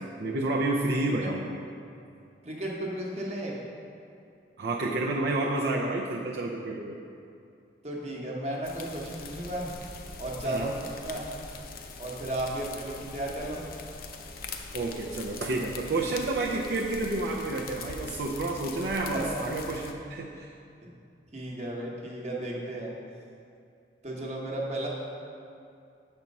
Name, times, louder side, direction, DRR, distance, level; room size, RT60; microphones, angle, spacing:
voice 1, 0.0-1.5 4.6-7.0 10.5-10.7 14.7-20.5, right 2 dB, 65° right, -3 dB, 0.5 m, -30 dB
voice 2, 2.4-3.6 7.8-9.7 10.2-11.2 12.0-13.6 19.1-19.6 20.8-20.9 21.3-22.9 24.0-24.9, right 1 dB, 35° right, -2 dB, 1.0 m, -34 dB
sound 1, 8.6-19.9, left 4 dB, 50° left, 0.5 m, -42 dB
7.2 x 4.4 x 5.3 m, 2.5 s
head